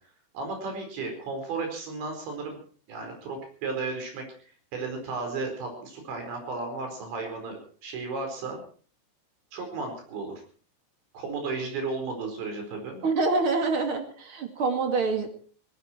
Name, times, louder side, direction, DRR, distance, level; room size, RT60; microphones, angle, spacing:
voice 1, 0.3-2.6 2.9-8.6 9.5-10.3 11.1-13.0, right 3 dB, 85° right, 4 dB, 6.9 m, -34 dB
voice 2, 13.0-15.3, right 3 dB, 40° right, 5 dB, 2.4 m, -26 dB
19.0 x 16.5 x 4.5 m, 0.44 s
omnidirectional pair, 5.0 m